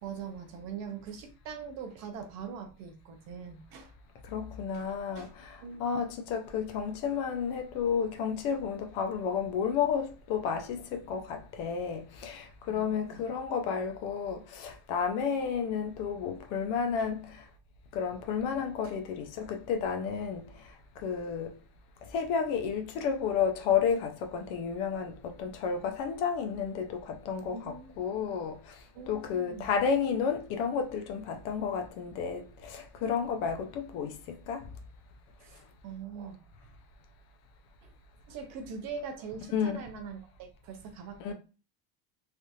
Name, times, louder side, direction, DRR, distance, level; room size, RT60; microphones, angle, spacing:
voice 1, 0.0-3.9 4.7-5.3 5.6-5.9 12.7-13.3 17.0-17.1 27.5-28.4 28.9-29.7 35.4-36.4 37.8-37.9 38.3-41.3, right 6 dB, 35° right, 0.5 m, -43 dB
voice 2, 4.3-17.4 17.9-20.4 21.0-21.5 22.1-28.6 29.1-34.6 39.5-39.8 41.2-41.3, left 6 dB, 55° left, 0.5 m, -31 dB
3.4 x 2.4 x 2.7 m
cardioid pair, 175°, 48 cm